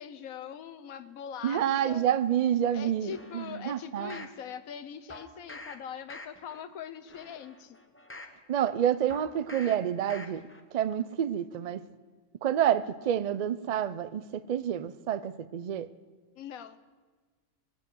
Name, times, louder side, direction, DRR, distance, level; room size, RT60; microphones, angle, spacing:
voice 1, 0.0-2.1 2.7-7.8 16.4-16.8, left 8 dB, 90° left, 1.2 m, -42 dB
voice 2, 1.4-4.3 8.5-10.4 10.7-11.8 12.4-15.9, right 10 dB, 85° right, 0.3 m, -28 dB
sound 1, 3.1-4.4 5.1-5.8 6.1-6.6 7.0-8.4 9.1-9.8 10.1-10.6 11.0-11.1, left 2 dB, 10° left, 0.7 m, -46 dB
19.5 x 8.4 x 7.7 m
omnidirectional pair, 1.4 m